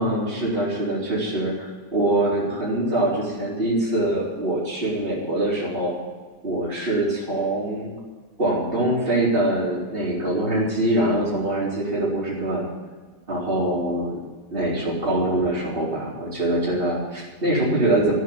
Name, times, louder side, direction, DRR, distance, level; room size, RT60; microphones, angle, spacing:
voice 1, 0.0-5.9 6.4-7.9 8.4-12.7 13.3-14.2 14.5-18.1, right 1 dB, 35° right, -6 dB, 4.4 m, -23 dB
14.5 x 8.2 x 9.7 m, 1.4 s
omnidirectional pair, 1.7 m